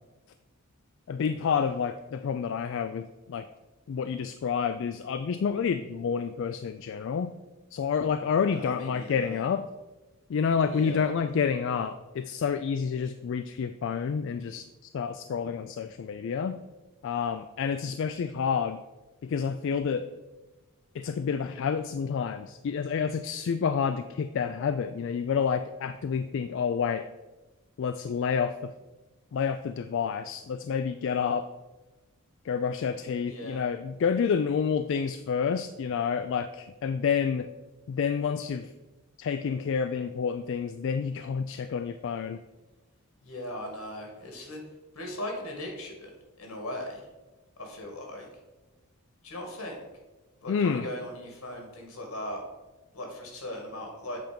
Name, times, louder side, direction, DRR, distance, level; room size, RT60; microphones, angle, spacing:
voice 1, 1.1-3.4 3.9-7.3 7.7-9.7 10.3-14.7 14.9-16.6 17.0-18.8 19.2-20.1 20.9-27.0 27.8-28.7 29.3-31.5 32.4-37.5 37.9-38.7 39.2-42.4 50.5-50.9, left 6 dB, 60° left, 10 dB, 0.3 m, -29 dB
voice 2, 8.5-9.4 10.7-11.0 33.2-33.6 43.2-44.6 44.9-46.1 46.4-47.0 47.6-48.3 49.2-49.8 50.4-52.4 52.9-54.2, left 1 dB, 80° left, 1 dB, 2.1 m, -38 dB
7.8 x 4.5 x 5.2 m, 1.1 s
head